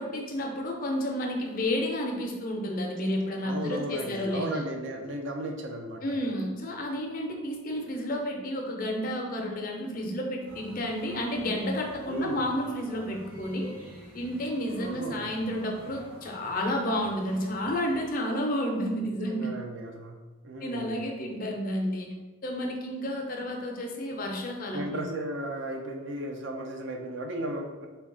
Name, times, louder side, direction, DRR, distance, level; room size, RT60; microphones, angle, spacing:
voice 1, 0.0-4.6 6.0-13.7 14.1-19.5 20.6-22.1 22.4-25.1, equal, 40° left, 1 dB, 0.4 m, -31 dB
voice 2, 3.4-6.1 12.1-12.5 14.8-15.3 19.0-20.9 24.7-27.9, right 1 dB, 55° right, 3 dB, 0.4 m, -35 dB
sound 1, 10.4-18.1, equal, 85° right, 1.0 m, -49 dB
3.2 x 2.2 x 3.7 m, 1.2 s
head